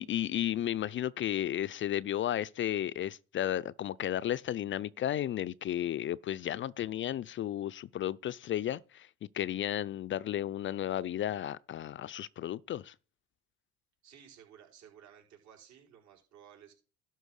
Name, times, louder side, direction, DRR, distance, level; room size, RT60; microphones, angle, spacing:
voice 1, 0.0-9.1 9.3-12.9, left 11 dB, 40° left, 0.5 m, -33 dB
voice 2, 14.0-16.7, right 9 dB, 60° right, 5.0 m, -56 dB
12.0 x 4.6 x 6.4 m
supercardioid pair, 85°, 30 cm